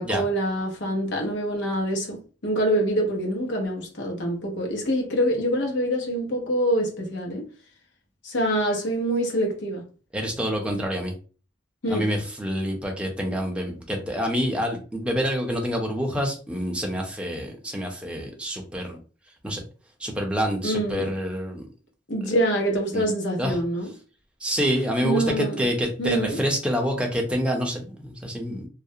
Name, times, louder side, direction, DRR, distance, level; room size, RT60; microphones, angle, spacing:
voice 1, 0.0-7.5 8.2-9.9 11.8-12.1 20.6-21.1 22.1-23.9 25.0-25.6 26.0-26.4, right 1 dB, 85° left, 0.8 m, -25 dB
voice 2, 10.1-11.1 11.9-19.0 19.4-19.6 20.0-21.7 22.9-23.0 23.4-23.6 24.4-28.7, equal, 5° right, 0.5 m, -27 dB
2.4 x 2.0 x 2.7 m
head